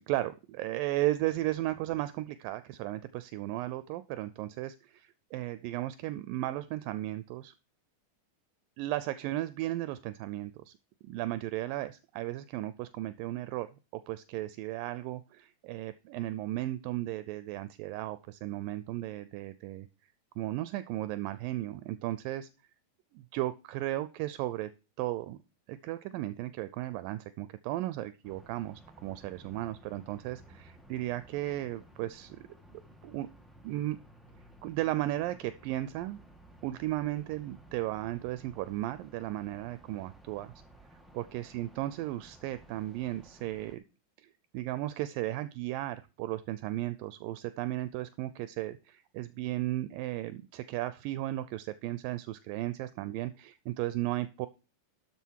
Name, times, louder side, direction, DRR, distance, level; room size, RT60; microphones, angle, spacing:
voice 1, 0.0-7.5 8.8-10.7 11.0-13.7 14.1-19.9 20.4-22.5 23.1-24.7 25.0-25.4 25.7-32.4 33.0-33.3 33.6-34.0 34.6-36.2 36.6-40.5 41.1-43.8 44.5-54.5, right 15 dB, 80° right, 14 dB, 2.3 m, -35 dB
sound 1, 28.2-43.8, right 1 dB, ahead, 0.4 m, -56 dB
12.5 x 6.2 x 4.5 m, 0.32 s
omnidirectional pair, 4.0 m